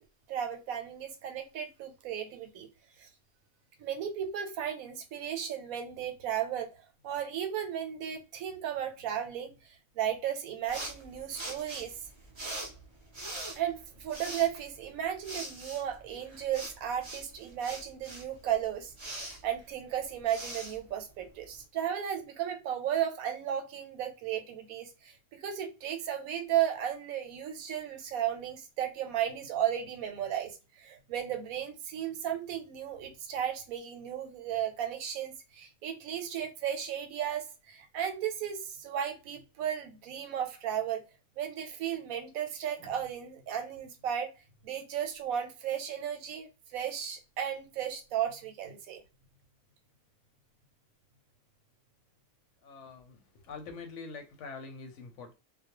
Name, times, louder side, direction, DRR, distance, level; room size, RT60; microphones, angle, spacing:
voice 1, 0.3-2.7 3.0-3.1 3.8-6.7 7.0-11.9 13.5-41.0 41.4-44.3 44.6-49.0, right 10 dB, 90° right, 1.1 m, -34 dB
sound 1, 10.7-21.6, right 1 dB, 45° right, 0.4 m, -44 dB
voice 2, 52.6-55.3, left 4 dB, 70° left, 0.8 m, -45 dB
2.3 x 2.1 x 2.8 m
omnidirectional pair, 1.4 m